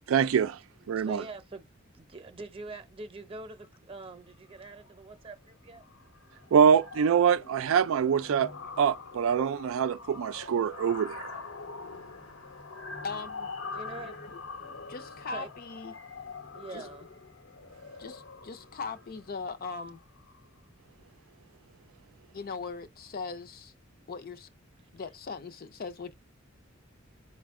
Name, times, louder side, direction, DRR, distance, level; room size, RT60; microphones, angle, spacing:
voice 1, 0.1-0.6 0.9-1.2 6.5-8.5 8.8-11.4, right 7 dB, 75° right, 0.3 m, -24 dB
voice 2, 0.8-1.7 1.9-5.8 13.7-14.2 15.3-15.5 16.5-17.1, right 3 dB, 25° right, 0.7 m, -44 dB
sound 1, 4.6-4.9 5.2-5.5 5.7-20.6, left 4 dB, 90° left, 0.9 m, -44 dB
voice 3, 13.0-13.5 14.2-14.4 14.9-16.0 16.7-16.9 18.0-20.0 22.3-23.7 24.1-24.5 24.9-26.1, left 4 dB, 45° left, 0.5 m, -39 dB
4.9 x 2.2 x 3.5 m
head